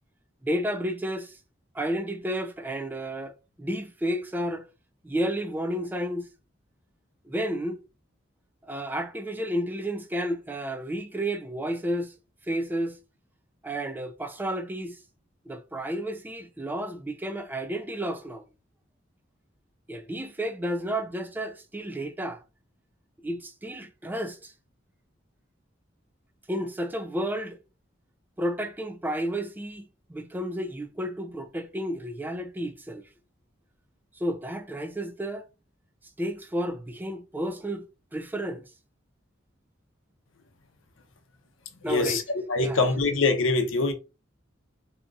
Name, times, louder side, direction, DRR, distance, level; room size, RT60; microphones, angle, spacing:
voice 1, 0.4-1.4 1.7-4.6 5.0-6.3 7.2-7.8 8.7-12.1 12.4-13.0 13.6-15.0 15.5-18.4 19.9-22.4 23.2-24.5 26.5-27.6 28.4-33.0 34.1-35.4 36.2-37.8 38.1-38.6 41.8-42.2 42.6-42.8, equal, 10° right, 0.4 m, -31 dB
voice 2, 41.9-42.2 42.5-43.9, left 3 dB, 80° left, 0.6 m, -23 dB
2.8 x 2.4 x 3.8 m
head